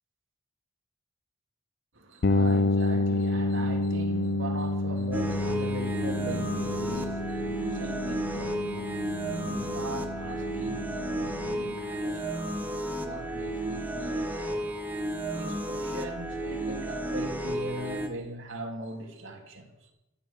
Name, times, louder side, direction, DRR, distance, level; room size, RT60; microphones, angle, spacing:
voice 1, 1.9-14.9 15.3-19.9, right 1 dB, 60° right, 2.5 m, -40 dB
sound 1, 2.2-11.9, left 2 dB, 50° left, 0.5 m, -29 dB
sound 2, 5.1-18.1, right 1 dB, 10° right, 1.4 m, -33 dB
14.0 x 11.0 x 6.8 m
head